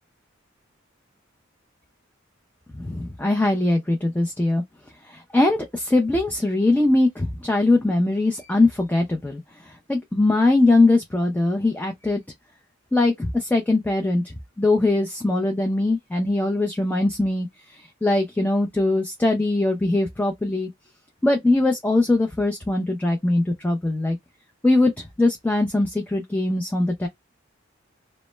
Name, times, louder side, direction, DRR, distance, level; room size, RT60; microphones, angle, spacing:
voice 1, 2.7-4.6 5.1-9.4 9.9-12.2 12.9-17.5 18.0-20.7 21.2-24.2 24.6-24.9 25.2-27.1, left 2 dB, 10° left, 0.3 m, -21 dB
2.1 x 2.0 x 3.1 m
head